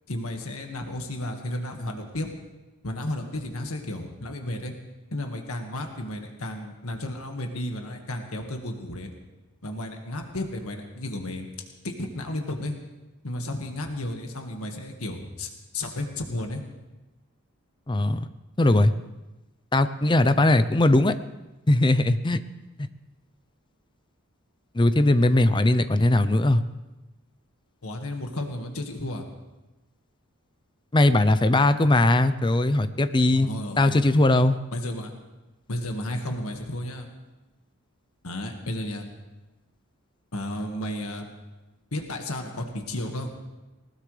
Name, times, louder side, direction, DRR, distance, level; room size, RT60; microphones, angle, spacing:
voice 1, 0.1-2.3 2.8-4.7 5.1-9.1 9.6-11.5 11.8-12.8 13.2-16.6 27.8-29.3 33.5-34.0 34.7-35.1 35.7-37.1 38.2-39.1 40.3-41.3 41.9-43.3, left 1 dB, 80° left, 3 dB, 1.8 m, -33 dB
voice 2, 17.9-18.3 18.6-18.9 19.7-21.1 21.7-22.4 24.7-26.6 30.9-33.5 33.8-34.6, left 1 dB, 20° left, 12 dB, 0.5 m, -20 dB
20.0 x 19.5 x 3.3 m, 1.1 s
head